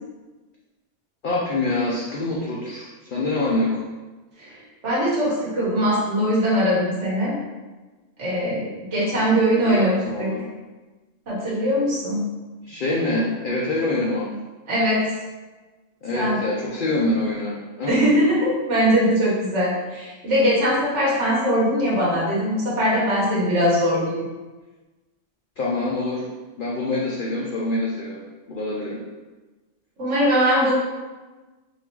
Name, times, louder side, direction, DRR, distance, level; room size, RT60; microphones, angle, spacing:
voice 1, 1.2-3.8 9.2-10.5 12.6-14.3 16.0-18.0 25.6-26.3 26.6-28.2 28.5-29.0, left 2 dB, 50° left, -4 dB, 0.7 m, -25 dB
voice 2, 4.8-7.4 8.2-10.3 11.3-12.2 14.7-15.0 16.1-16.4 17.9-24.2 30.0-30.7, equal, 70° right, -6 dB, 1.7 m, -21 dB
4.0 x 2.7 x 4.5 m, 1.2 s
omnidirectional pair, 1.3 m